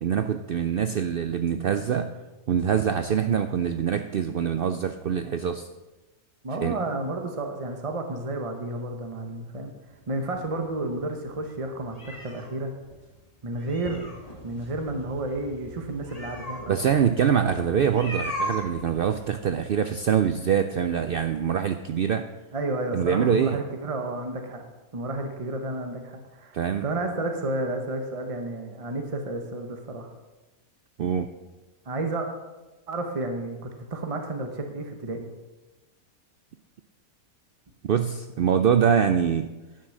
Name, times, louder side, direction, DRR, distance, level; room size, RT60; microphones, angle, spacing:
voice 1, 0.0-2.1 2.5-5.7 6.6-6.7 16.7-22.2 22.9-23.6 26.5-26.8 31.0-31.3 37.8-39.5, right 8 dB, 85° right, 8 dB, 0.5 m, -24 dB
voice 2, 6.4-9.7 10.1-12.7 13.4-14.0 14.4-16.8 22.5-24.6 24.9-30.1 31.9-32.3 32.9-35.3, right 2 dB, 25° right, 4 dB, 0.9 m, -31 dB
sound 1, 9.9-19.4, equal, 25° left, 2.1 m, -39 dB
11.5 x 6.2 x 6.4 m, 1.1 s
omnidirectional pair, 1.5 m